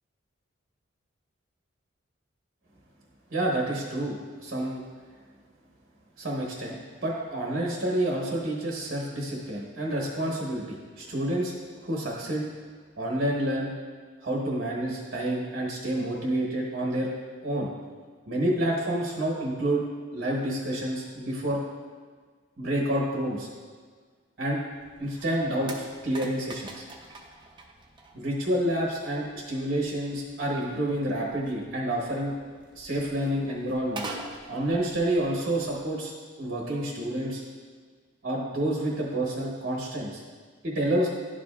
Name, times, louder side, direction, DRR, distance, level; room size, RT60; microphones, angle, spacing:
voice 1, 3.3-4.8 6.2-6.8 7.0-11.5 11.8-12.5 13.0-13.7 14.2-17.1 17.4-17.7 18.3-19.8 20.1-21.6 22.6-23.5 24.4-24.6 25.0-26.7 28.1-32.3 32.7-34.2 34.5-36.1 36.4-37.4 38.2-40.2 40.6-41.1, right 1 dB, 50° right, -2 dB, 1.0 m, -29 dB
sound 1, 24.7-35.9, right 2 dB, 25° right, 0.5 m, -46 dB
11.0 x 5.0 x 2.3 m, 1.5 s
head